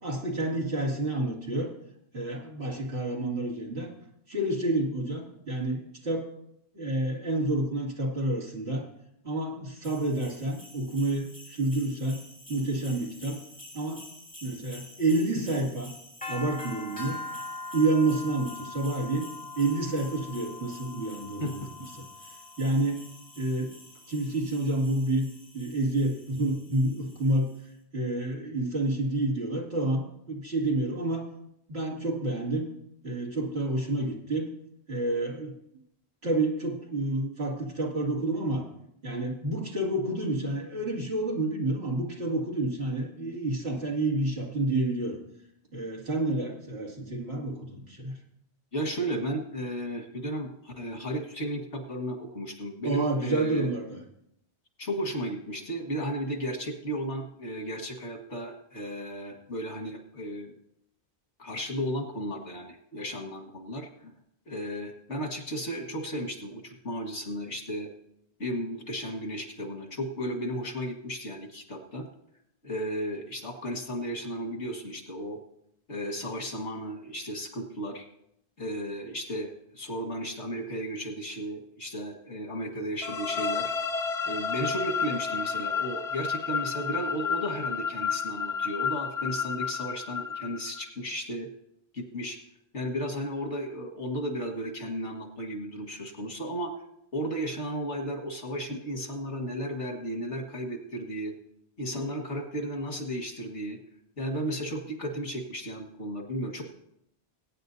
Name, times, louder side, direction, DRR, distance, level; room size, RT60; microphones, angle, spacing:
voice 1, 0.0-1.7 2.1-3.9 4.3-6.2 6.7-8.8 9.2-12.2 12.5-13.4 13.7-14.0 14.4-15.9 16.3-17.2 17.7-19.3 19.6-21.7 22.0-22.1 22.6-23.0 23.4-23.7 24.1-25.3 25.5-27.5 27.9-31.2 31.7-32.7 33.0-34.5 34.9-35.6 36.2-38.6 39.0-45.2 45.7-48.2 52.8-54.0, right 2 dB, 70° right, -2 dB, 2.9 m, -29 dB
sound 1, 9.8-27.6, left 2 dB, 5° left, 3.1 m, -44 dB
voice 2, 48.7-53.7 54.8-60.6 61.4-64.1 64.5-67.9 68.4-72.1 72.6-75.4 75.9-78.1 78.6-83.7 84.3-91.5 91.9-92.4 92.7-96.7 97.1-101.3 101.8-103.8 104.2-106.6, equal, 85° left, 2 dB, 2.1 m, -34 dB
sound 2, 83.0-90.8, left 6 dB, 35° left, 0.7 m, -31 dB
21.5 x 9.3 x 2.7 m, 0.77 s
omnidirectional pair, 1.1 m